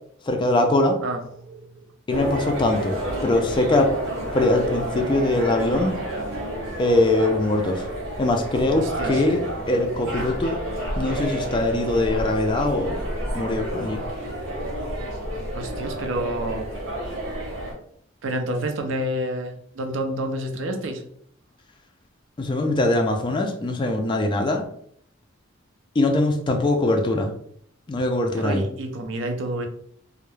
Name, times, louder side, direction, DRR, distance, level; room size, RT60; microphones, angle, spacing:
voice 1, 0.2-1.0 2.1-3.9 4.3-6.0 6.8-7.9 8.2-10.6 11.0-13.0 13.3-14.0 22.4-24.7 26.0-27.3 27.9-28.7, left 2 dB, 25° left, 4 dB, 0.3 m, -22 dB
voice 2, 1.0-1.8 8.8-9.2 14.9-15.1 15.5-16.7 18.2-21.0 28.3-29.7, right 1 dB, 65° right, 5 dB, 0.5 m, -29 dB
sound 1, 2.1-17.7, right 1 dB, 90° right, 1.0 m, -30 dB
2.2 x 2.0 x 3.1 m, 0.66 s
head